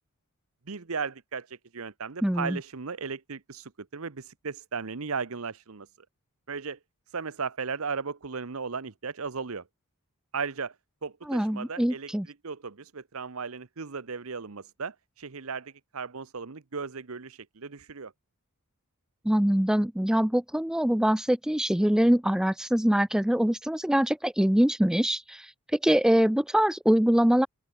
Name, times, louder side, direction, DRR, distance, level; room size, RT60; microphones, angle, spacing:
voice 1, 0.7-5.9 6.5-6.8 7.1-9.6 10.3-10.7 11.0-18.1, right 5 dB, 70° right, 0.9 m, -36 dB
voice 2, 2.2-2.6 11.3-12.3 19.3-25.4 25.8-27.5, equal, 5° right, 0.3 m, -23 dB
open air
head